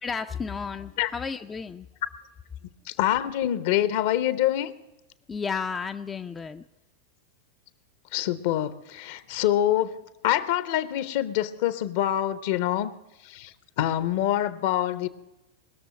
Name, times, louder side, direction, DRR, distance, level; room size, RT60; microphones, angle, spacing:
voice 1, 0.0-1.9 5.3-6.6, left 5 dB, 15° left, 7 dB, 0.4 m, -32 dB
voice 2, 2.9-4.7 8.1-9.9 10.2-12.9 13.2-13.5 13.8-15.1, left 12 dB, 50° left, 15 dB, 0.8 m, -25 dB
20.0 x 6.9 x 8.6 m, 0.99 s
figure-of-eight pair, 90°, 0 cm